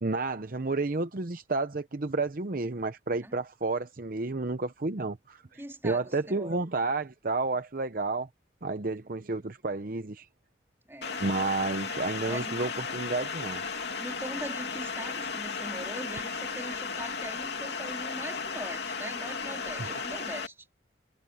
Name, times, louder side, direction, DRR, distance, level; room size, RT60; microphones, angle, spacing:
voice 1, 0.0-8.3 8.6-10.3 11.2-13.6 19.8-20.0, right 3 dB, 50° right, 0.8 m, -31 dB
voice 2, 5.6-6.6 10.9-11.2 12.3-12.7 14.0-20.7, right 1 dB, 15° right, 2.9 m, -41 dB
sound 1, 11.0-20.5, left 5 dB, 60° left, 3.1 m, -35 dB
head